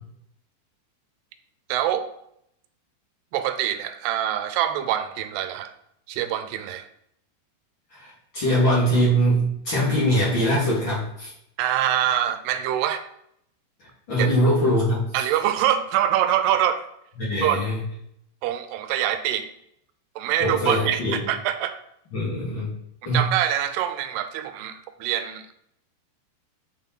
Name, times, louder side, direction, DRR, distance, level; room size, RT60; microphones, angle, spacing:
voice 1, 1.7-2.1 3.3-5.7 6.1-6.9 11.6-13.1 14.2-14.3 15.1-16.9 17.4-17.6 18.4-19.5 20.2-21.8 23.1-25.4, right 11 dB, 85° right, 10 dB, 2.7 m, -24 dB
voice 2, 7.9-11.3 14.1-15.2 17.2-17.8 20.4-21.2 22.1-22.7 23.1-23.3, equal, 35° left, -6 dB, 2.4 m, -22 dB
9.0 x 5.6 x 4.5 m, 0.74 s
omnidirectional pair, 4.7 m